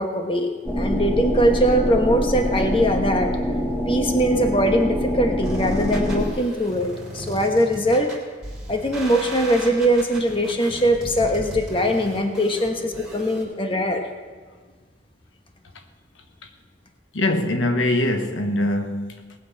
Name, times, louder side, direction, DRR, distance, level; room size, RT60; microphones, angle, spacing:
voice 1, 0.0-3.4 3.9-8.1 8.7-14.1, equal, 30° left, 1.2 m, -21 dB
sound 1, 0.6-6.3, equal, 15° left, 1.5 m, -24 dB
sound 2, 5.4-13.4, right 1 dB, 5° right, 3.1 m, -36 dB
voice 2, 17.1-19.3, left 1 dB, 90° left, 1.2 m, -23 dB
19.0 x 8.0 x 5.7 m
head